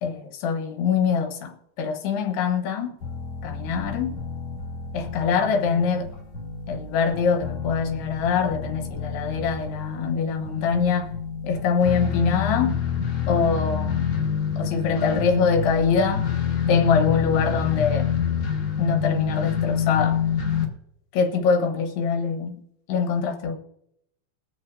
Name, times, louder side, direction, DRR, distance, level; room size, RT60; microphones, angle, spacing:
voice 1, 0.0-2.9 3.4-4.1 4.9-6.1 6.7-11.1 11.4-12.7 13.3-14.1 14.6-16.3 16.7-18.1 18.8-20.2 21.1-22.6 22.9-23.6, left 5 dB, 75° left, 2.9 m, -24 dB
sound 1, 3.0-20.6, left 7 dB, 55° left, 2.1 m, -27 dB
21.5 x 7.5 x 2.5 m
omnidirectional pair, 5.1 m